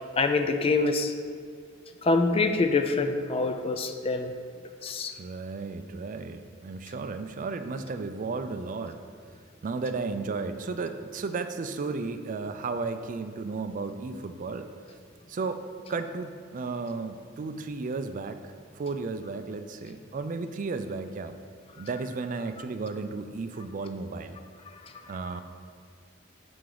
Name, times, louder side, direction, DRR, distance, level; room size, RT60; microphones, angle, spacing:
voice 1, 0.2-1.1 2.0-4.3 4.8-5.1, left 3 dB, 30° left, 7 dB, 0.3 m, -25 dB
voice 2, 5.1-9.0 9.6-14.7 15.3-15.6 15.9-21.4 21.8-24.4 25.1-25.4, right 4 dB, 45° right, 9 dB, 0.4 m, -34 dB
6.9 x 4.8 x 3.9 m, 2.2 s
head